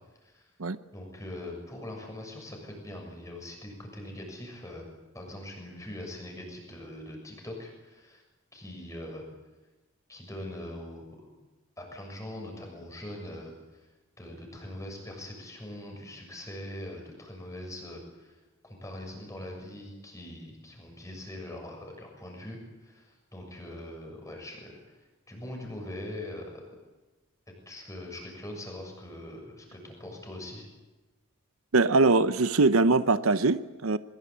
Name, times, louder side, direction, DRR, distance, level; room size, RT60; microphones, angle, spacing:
voice 1, 0.9-4.9 5.1-8.2 8.5-9.2 10.1-11.3 11.8-13.5 14.2-18.4 18.6-25.0 25.3-26.7 27.7-30.7, left 1 dB, 15° left, 2 dB, 6.9 m, -42 dB
voice 2, 31.7-34.0, right 3 dB, 85° right, 13 dB, 0.8 m, -22 dB
22.5 x 22.0 x 8.6 m, 1.1 s
head